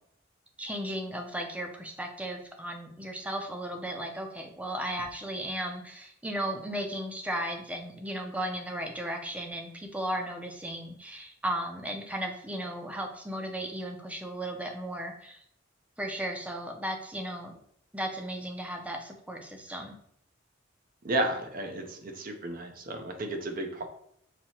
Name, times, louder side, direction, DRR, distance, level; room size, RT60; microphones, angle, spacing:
voice 1, 0.6-15.4 16.0-17.6 17.9-19.9, right 1 dB, 10° right, 3 dB, 0.6 m, -35 dB
voice 2, 21.0-23.9, right 1 dB, 50° right, 4 dB, 0.7 m, -32 dB
5.9 x 2.8 x 2.9 m, 0.69 s
head